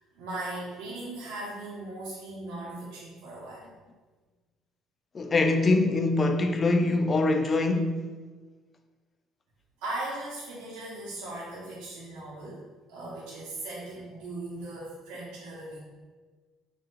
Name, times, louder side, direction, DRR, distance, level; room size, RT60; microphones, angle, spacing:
voice 1, 0.0-3.7 9.8-12.6 12.9-15.8, right 2 dB, 90° right, 0.8 m, -38 dB
voice 2, 5.1-8.1, left 2 dB, 25° left, 0.3 m, -24 dB
3.4 x 2.6 x 4.4 m
cardioid pair, 135°, 0 cm